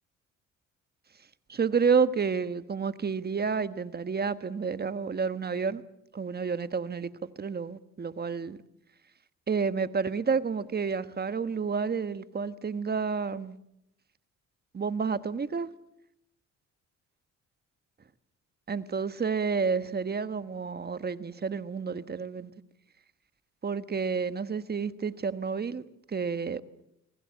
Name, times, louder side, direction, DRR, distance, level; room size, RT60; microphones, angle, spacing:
voice 1, 1.5-5.8 6.1-8.6 9.5-13.6 14.7-15.7 18.7-22.5 23.6-25.8 26.1-26.6, right 5 dB, 30° right, 1.4 m, -30 dB
28.0 x 20.0 x 7.8 m
cardioid pair, 90°, 30 cm